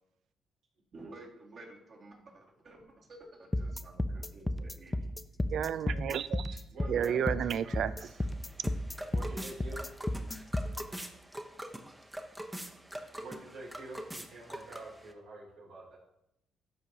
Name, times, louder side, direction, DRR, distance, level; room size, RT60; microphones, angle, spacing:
voice 1, 0.9-5.0 6.9-8.1, right 2 dB, 50° right, -2 dB, 2.1 m, -51 dB
sound 1, 3.5-10.8, left 1 dB, 15° left, 0.4 m, -33 dB
voice 2, 5.5-6.5 6.9-7.9, right 9 dB, 70° right, 16 dB, 0.3 m, -31 dB
voice 3, 6.7-7.2 9.1-9.9 13.2-16.0, right 2 dB, 90° right, -6 dB, 3.2 m, -46 dB
sound 2, 8.0-15.1, right 1 dB, 10° right, 0.8 m, -44 dB
12.5 x 4.7 x 2.8 m, 0.79 s
cardioid pair, 90°, 0 cm